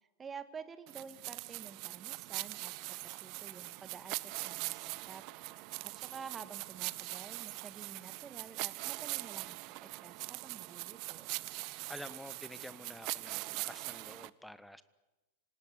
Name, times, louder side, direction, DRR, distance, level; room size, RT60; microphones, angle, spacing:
voice 1, 0.2-5.2 5.8-11.3, right 6 dB, 20° right, 12 dB, 1.9 m, -50 dB
sound 1, 0.9-14.3, right 23 dB, 45° right, 0.8 m, -42 dB
voice 2, 11.9-14.8, left 1 dB, 5° left, 15 dB, 1.3 m, -49 dB
26.5 x 19.5 x 9.7 m, 1.1 s
figure-of-eight pair, 90°, 0 cm